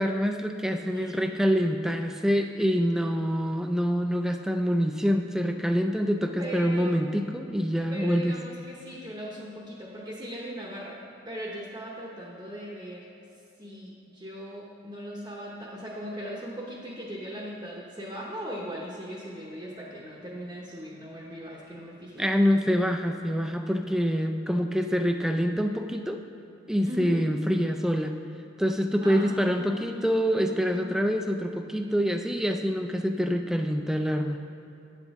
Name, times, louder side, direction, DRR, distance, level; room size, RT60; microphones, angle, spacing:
voice 1, 0.0-8.4 22.2-26.2 26.7-28.1 28.6-34.4, equal, 5° right, 5 dB, 0.3 m, -26 dB
voice 2, 6.4-7.0 7.9-13.1 13.6-22.3 22.7-22.8 26.8-27.2 29.0-31.0, equal, 25° right, -5 dB, 0.8 m, -39 dB
9.0 x 7.1 x 3.5 m, 2.8 s
head